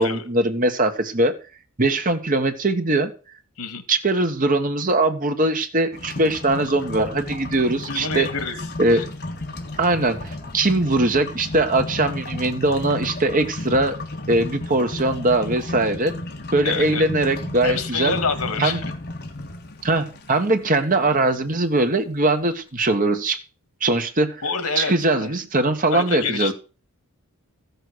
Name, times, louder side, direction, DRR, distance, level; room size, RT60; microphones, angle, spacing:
voice 1, 0.0-1.4 1.8-3.1 3.9-8.3 8.8-9.0 9.8-14.0 14.3-16.1 16.5-18.2 18.6-18.8 19.8-23.4 23.8-24.4 24.8-26.5, right 2 dB, 40° right, 7 dB, 1.4 m, -21 dB
sound 1, 5.9-21.8, left 2 dB, 45° left, 1.9 m, -33 dB
voice 2, 7.9-8.6 8.9-9.0 16.6-17.1 17.6-18.9 24.4-25.3 25.9-26.5, left 5 dB, 85° left, 11 dB, 2.1 m, -27 dB
Thunder / Rain, 8.5-16.8, left 1 dB, 10° right, 7.2 m, -49 dB
14.5 x 6.7 x 6.3 m, 0.35 s
head